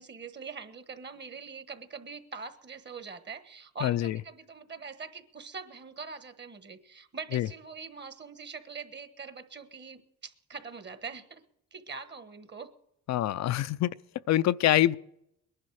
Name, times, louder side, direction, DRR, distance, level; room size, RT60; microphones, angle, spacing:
voice 1, 0.0-11.4 11.7-12.7, right 5 dB, 35° right, 1.4 m, -43 dB
voice 2, 3.8-4.2 7.3-7.5 13.1-13.9 14.3-15.0, left 13 dB, 65° left, 0.5 m, -25 dB
20.5 x 11.0 x 4.8 m
cardioid pair, 90°, 30 cm